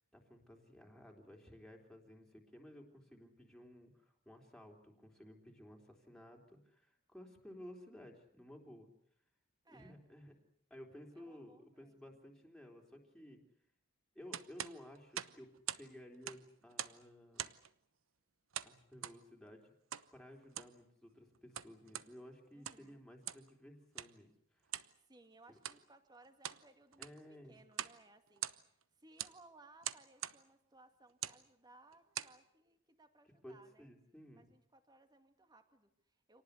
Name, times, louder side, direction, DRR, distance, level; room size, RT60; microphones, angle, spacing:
voice 1, 0.1-8.9 9.7-10.3 10.7-13.4 14.1-15.5 15.8-17.4 18.6-19.7 20.1-24.3 24.5-24.7 27.0-27.6 33.4-34.5, left 1 dB, 5° left, 1 dB, 3.6 m, -55 dB
voice 2, 9.6-10.0 11.1-12.2 22.5-23.0 24.9-33.9 34.3-36.4, right 2 dB, 20° right, 7 dB, 2.3 m, -64 dB
sound 1, 14.3-15.9 16.1-17.0 17.4-17.7 18.5-19.2 19.9-20.1 20.4-20.8 21.3-22.1 22.5-22.9 23.2-23.5 24.0-24.1 24.7-24.9 25.6-25.8 26.2-26.6 26.9-27.2 27.7-28.0 28.3-28.8 29.2-29.4 29.8-30.4 31.1-31.4 31.9-32.4, right 11 dB, 75° right, 0.9 m, -43 dB
27.0 x 19.0 x 8.2 m, 0.70 s
head